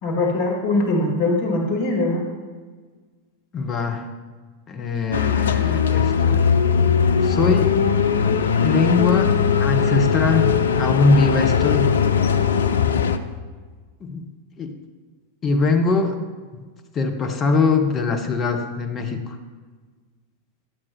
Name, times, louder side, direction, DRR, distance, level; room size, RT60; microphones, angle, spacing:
voice 1, 0.0-2.2, left 2 dB, 45° left, 0 dB, 1.8 m, -21 dB
voice 2, 3.5-4.1 4.7-6.5 7.2-7.7 8.6-9.3 9.6-11.9 14.0-14.2 14.6-14.7 15.4-16.2 16.5-16.6 16.9-19.4, left 4 dB, 25° left, 5 dB, 0.8 m, -22 dB
sound 1, 5.1-13.2, left 6 dB, 65° left, 0.4 m, -19 dB
10.0 x 7.3 x 3.1 m, 1.4 s
figure-of-eight pair, 90°, 0 cm